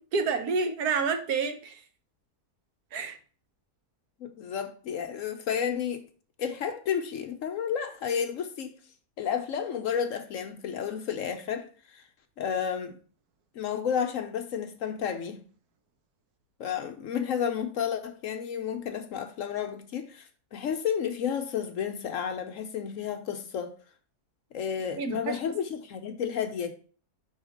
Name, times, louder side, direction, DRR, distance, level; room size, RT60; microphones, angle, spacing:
voice 1, 0.0-1.8 2.9-3.2 25.0-25.4, right 5 dB, 75° right, 1.3 m, -29 dB
voice 2, 4.2-6.0 6.4-8.7 9.2-12.0 12.4-13.0 13.5-15.4 16.6-23.7 24.5-26.7, left 8 dB, 65° left, 0.9 m, -31 dB
5.6 x 3.6 x 5.0 m
omnidirectional pair, 1.7 m